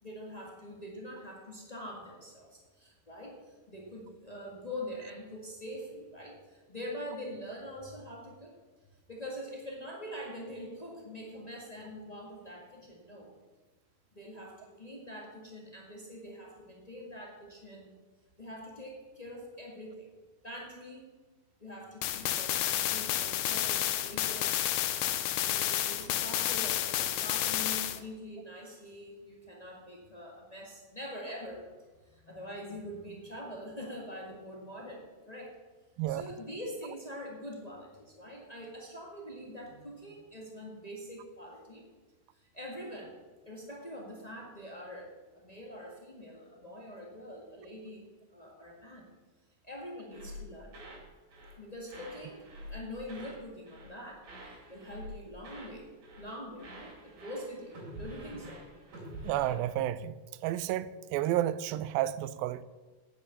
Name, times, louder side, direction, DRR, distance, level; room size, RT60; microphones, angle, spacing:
voice 1, 0.0-8.5 9.1-13.3 14.1-17.9 18.4-20.1 20.4-21.1 21.6-24.5 25.3-31.7 32.0-35.5 36.1-41.8 42.3-43.1 43.4-49.1 49.6-50.8 51.6-52.4 52.7-55.9 56.2-58.6, equal, 50° left, -2 dB, 0.4 m, -44 dB
sound 1, 22.0-28.0, left 12 dB, 85° left, 1.6 m, -30 dB
sound 2, 50.1-51.1 51.3-51.6 51.9-53.4 53.7-54.0 54.2-55.8 56.0-56.3 56.6-59.5, equal, 65° right, 4.1 m, -47 dB
voice 2, 59.2-60.1 60.4-62.6, right 13 dB, 90° right, 16 dB, 2.4 m, -31 dB
9.0 x 8.6 x 7.0 m, 1.3 s
omnidirectional pair, 4.1 m